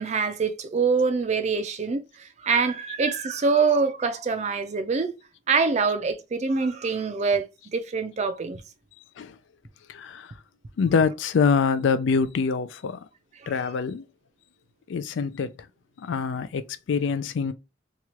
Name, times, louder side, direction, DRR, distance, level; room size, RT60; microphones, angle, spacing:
voice 1, 0.0-5.1 5.5-7.5 7.7-8.6 13.4-13.5, right 4 dB, 35° right, 0.4 m, -25 dB
voice 2, 9.9-10.3 10.8-13.0 13.5-14.1 14.9-15.5 16.0-17.5, left 5 dB, 80° left, 0.4 m, -25 dB
2.9 x 2.3 x 2.9 m
head